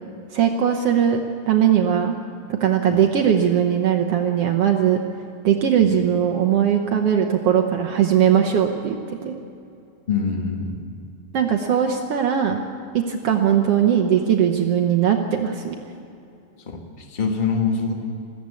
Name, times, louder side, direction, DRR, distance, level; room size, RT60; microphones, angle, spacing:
voice 1, 0.3-1.2 1.5-2.2 2.5-5.0 5.4-9.0 9.2-9.4 11.3-12.6 12.9-15.8, right 9 dB, 75° right, 4 dB, 1.3 m, -19 dB
voice 2, 10.1-10.8 16.7-17.9, left 5 dB, 85° left, 2 dB, 0.4 m, -24 dB
21.0 x 15.0 x 8.4 m, 2.7 s
omnidirectional pair, 4.0 m